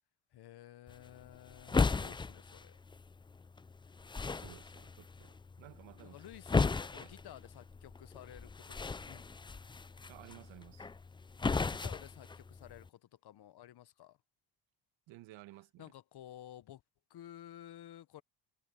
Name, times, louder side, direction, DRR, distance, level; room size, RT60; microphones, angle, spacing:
voice 1, 0.3-2.8 6.0-8.8 9.0-9.3 11.7-14.2 15.8-16.8 17.1-18.2, left 12 dB, 60° left, 1.2 m, -53 dB
flop on couch, 0.9-12.9, left 4 dB, 10° left, 0.4 m, -37 dB
voice 2, 4.3-6.2 6.9-7.1 10.1-10.9 15.1-15.9, right 17 dB, 80° right, 1.5 m, -55 dB
supercardioid pair, 70°, 45 cm